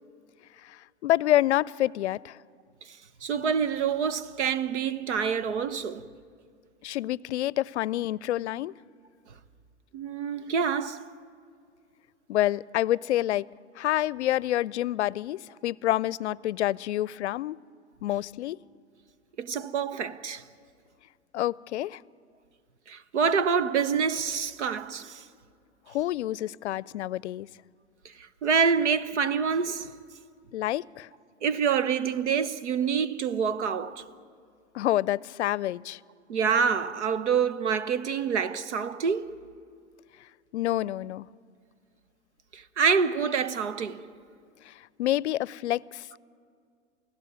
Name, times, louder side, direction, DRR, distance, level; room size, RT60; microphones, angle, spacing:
voice 1, 0.6-2.4 6.8-8.7 12.3-13.5 13.8-17.6 18.0-18.6 21.3-22.0 25.9-27.5 30.5-31.1 34.7-36.0 40.5-41.3 44.7-44.8 45.0-46.1, left 14 dB, 70° left, 0.6 m, -28 dB
voice 2, 3.2-6.1 9.9-11.1 19.4-20.4 22.9-25.2 28.4-30.0 31.4-34.1 36.3-39.4 42.5-44.1, right 6 dB, 75° right, 1.1 m, -26 dB
28.5 x 16.5 x 9.5 m
hypercardioid pair, 100°, 35 cm